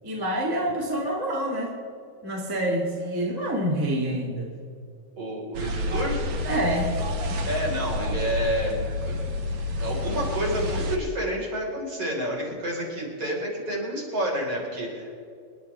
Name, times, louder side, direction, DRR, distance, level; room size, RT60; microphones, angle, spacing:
voice 1, 0.0-1.7 2.2-4.5 6.5-6.9, right 1 dB, 10° right, -2 dB, 1.3 m, -27 dB
voice 2, 5.2-6.3 7.4-9.2 9.8-15.2, right 1 dB, 40° right, -3 dB, 5.0 m, -29 dB
sound 1, 5.5-11.0, left 2 dB, 85° right, 1.0 m, -29 dB
27.5 x 11.5 x 3.3 m, 2.5 s
omnidirectional pair, 4.2 m